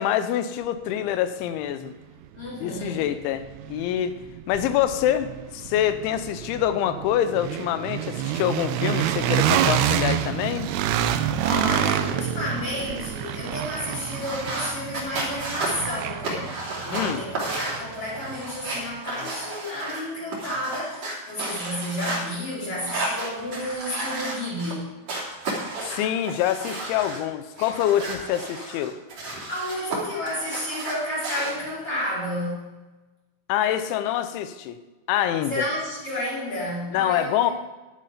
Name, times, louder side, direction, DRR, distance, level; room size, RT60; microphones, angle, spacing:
voice 1, 0.0-1.9 2.6-4.2 4.5-10.7 16.9-17.2 25.8-29.0 33.5-34.8 35.1-35.6 36.9-37.5, left 11 dB, 90° left, 11 dB, 3.2 m, -25 dB
sound 1, 1.9-2.0 2.4-18.4, right 11 dB, 85° right, 2.5 m, -28 dB
voice 2, 2.3-3.1 11.4-24.9 29.5-32.7 35.5-37.5, left 1 dB, 40° left, -7 dB, 5.2 m, -31 dB
sound 2, 14.1-22.2 22.7-24.8 25.1-27.2 27.6-30.0 30.3-31.5, right 2 dB, 40° right, 3.5 m, -32 dB
11.5 x 11.0 x 5.0 m, 1.2 s
omnidirectional pair, 5.2 m